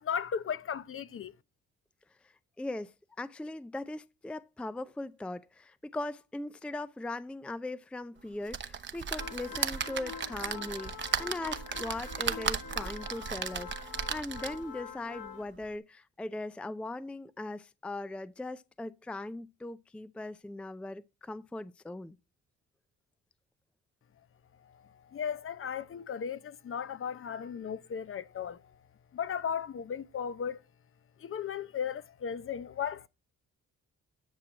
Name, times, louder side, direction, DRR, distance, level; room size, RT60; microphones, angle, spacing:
voice 1, 0.0-1.3 25.1-28.6 29.1-30.6 31.2-33.1, left 7 dB, 45° left, 0.8 m, -36 dB
voice 2, 2.6-22.2, left 2 dB, 5° left, 0.4 m, -39 dB
sound 1, 8.5-14.7 15.3-15.4 15.6-15.7, right 7 dB, 40° right, 0.9 m, -35 dB
sound 2, 9.2-15.4, left 7 dB, 75° left, 2.2 m, -45 dB
10.5 x 6.0 x 6.3 m
cardioid pair, 90°, 30 cm